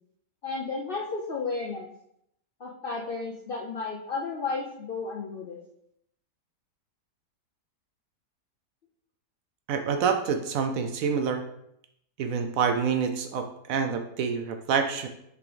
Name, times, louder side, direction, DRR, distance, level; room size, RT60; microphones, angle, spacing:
voice 1, 0.4-1.9 2.6-5.6, left 4 dB, 85° left, -1 dB, 0.4 m, -33 dB
voice 2, 9.7-11.4 12.2-15.1, right 6 dB, 70° right, 7 dB, 0.9 m, -27 dB
5.9 x 4.8 x 3.4 m, 0.76 s
omnidirectional pair, 1.8 m